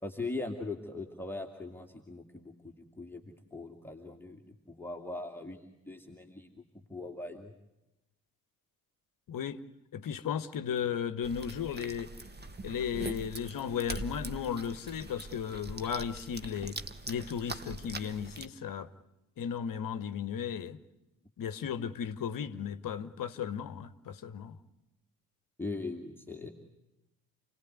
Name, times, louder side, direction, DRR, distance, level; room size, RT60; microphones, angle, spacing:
voice 1, 0.0-7.5 25.6-26.5, left 2 dB, 5° left, 2.3 m, -41 dB
voice 2, 9.3-9.6 9.9-12.1 12.6-16.8 17.1-18.9 19.4-20.8 21.4-24.6, left 8 dB, 45° left, 1.4 m, -35 dB
sound 1, 11.2-18.4, right 2 dB, 20° right, 1.5 m, -43 dB
29.5 x 19.0 x 9.5 m
figure-of-eight pair, 45°, 48 cm